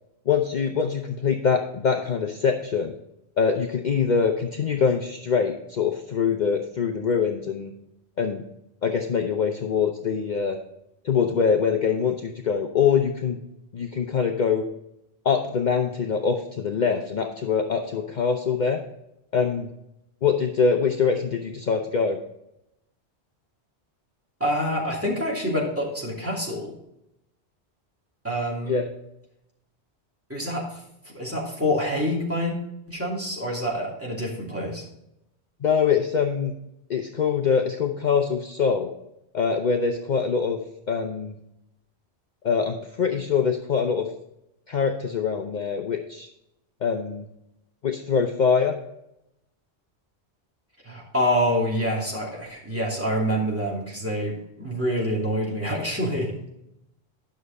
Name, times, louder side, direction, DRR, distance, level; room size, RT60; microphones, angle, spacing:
voice 1, 0.3-2.9 3.4-7.7 8.2-8.4 8.8-10.6 11.0-13.4 13.7-14.6 15.2-18.8 19.3-19.7 20.2-22.2 28.7-28.9 35.6-36.5 36.9-38.9 39.3-40.6 40.9-41.3 42.4-44.1 44.7-46.3 46.8-47.2 47.8-48.8, left 6 dB, 50° left, 4 dB, 0.7 m, -24 dB
voice 2, 24.4-26.7 28.2-28.8 30.3-30.8 31.1-32.6 32.9-34.8 50.8-56.4, equal, 10° right, -4 dB, 2.6 m, -26 dB
10.5 x 6.4 x 4.1 m, 0.83 s
omnidirectional pair, 1.1 m